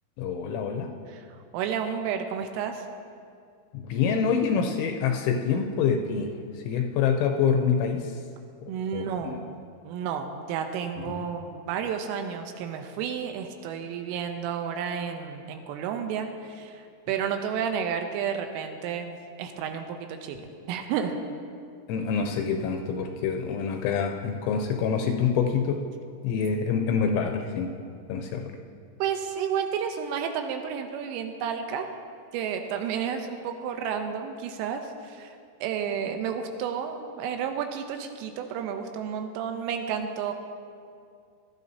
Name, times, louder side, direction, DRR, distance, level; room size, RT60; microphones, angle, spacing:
voice 1, 0.2-0.9 3.7-6.3 6.7-8.1 8.6-9.4 11.0-11.2 21.9-25.8 26.2-27.7 28.1-28.4, left 6 dB, 80° left, 4 dB, 2.9 m, -26 dB
voice 2, 1.1-2.9 8.7-9.4 9.8-20.4 20.7-21.2 29.0-31.9 32.3-40.3, right 7 dB, 85° right, 5 dB, 3.2 m, -31 dB
18.5 x 12.5 x 2.7 m, 2.3 s
omnidirectional pair, 6.0 m